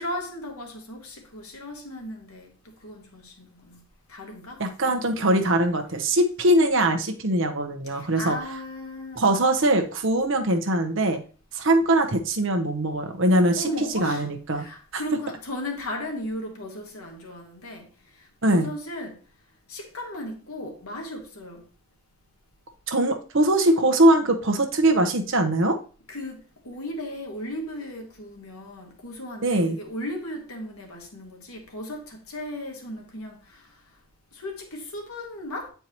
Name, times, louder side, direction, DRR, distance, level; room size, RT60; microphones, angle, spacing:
voice 1, 0.0-4.6 5.2-5.3 7.9-9.3 13.5-17.9 18.2-19.2 19.7-21.7 26.1-33.7 34.3-35.7, left 1 dB, 85° left, 1.6 m, -36 dB
voice 2, 4.6-8.4 9.2-11.2 11.5-13.7 13.9-14.6 14.9-15.0 18.4-18.7 22.9-25.8 29.4-29.8, right 1 dB, 60° right, 0.9 m, -22 dB
8.4 x 4.6 x 3.0 m
head